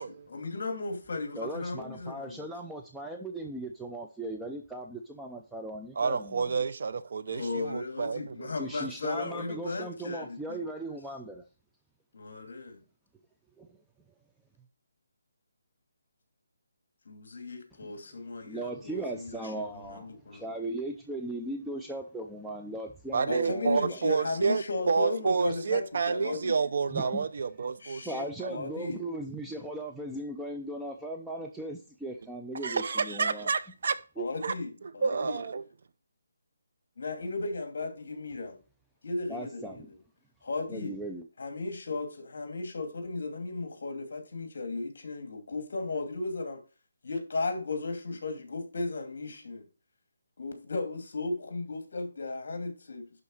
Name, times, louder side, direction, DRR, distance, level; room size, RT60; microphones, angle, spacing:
voice 1, 0.0-2.5 7.3-10.7 12.1-12.8 17.0-20.5 23.3-26.6 27.8-28.2 28.5-29.0 34.2-35.4 37.0-38.6 39.0-39.9 40.4-40.9 41.4-46.6 47.0-49.6 50.4-53.0, left 3 dB, 50° left, 2.7 m, -35 dB
voice 2, 1.4-6.5 8.6-11.4 13.6-13.7 18.5-24.0 26.9-27.3 28.0-33.5 34.2-34.3 39.3-39.9 40.7-41.2, right 1 dB, ahead, 0.4 m, -38 dB
voice 3, 6.0-8.4 23.1-28.6 32.6-34.0 34.4-34.5 35.0-35.6, right 5 dB, 45° right, 0.6 m, -29 dB
11.0 x 4.1 x 6.4 m
hypercardioid pair, 175°, 0 cm